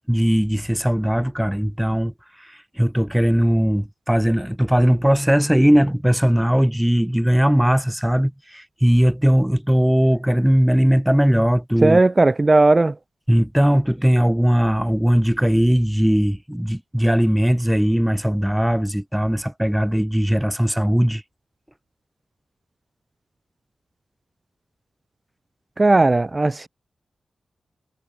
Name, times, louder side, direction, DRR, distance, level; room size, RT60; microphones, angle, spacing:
voice 1, 0.1-2.1 2.8-12.0 13.3-21.2, equal, 5° right, 6.1 m, -19 dB
voice 2, 11.8-12.9 25.8-26.7, right 2 dB, 25° right, 0.9 m, -16 dB
wide cardioid pair, 125°, 0 cm